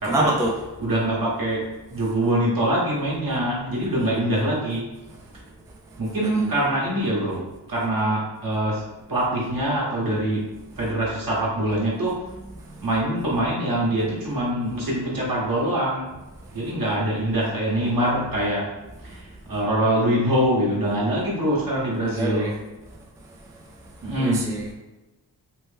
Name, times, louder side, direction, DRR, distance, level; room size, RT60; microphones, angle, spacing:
voice 1, 0.0-0.5 6.2-6.5 12.7-12.9 22.1-22.5 24.2-24.7, right 2 dB, 10° right, -1 dB, 0.4 m, -26 dB
voice 2, 0.8-4.9 6.0-8.8 9.1-10.5 10.8-12.2 12.8-16.1 16.5-18.7 19.0-19.2 19.5-22.5 24.0-24.5, right 1 dB, 50° right, -5 dB, 1.3 m, -24 dB
2.9 x 2.0 x 3.4 m, 1.1 s
cardioid pair, 50°, 44 cm